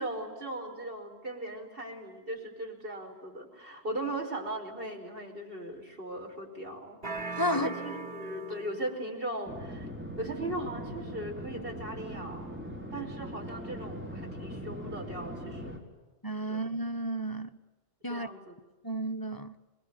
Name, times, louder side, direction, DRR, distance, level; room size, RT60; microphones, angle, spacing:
voice 1, 0.0-7.0 7.5-9.9 10.2-12.5 12.9-15.8 16.5-16.6 18.1-18.6, right 1 dB, 60° right, 5.4 m, -38 dB
sound 1, 7.0-9.0, right 3 dB, 85° right, 6.6 m, -38 dB
voice 2, 7.4-7.7 16.2-17.6 18.0-18.3 18.8-19.6, equal, 20° left, 1.1 m, -32 dB
sound 2, 9.5-15.8, equal, 10° right, 4.2 m, -40 dB
27.0 x 21.5 x 9.8 m
omnidirectional pair, 1.1 m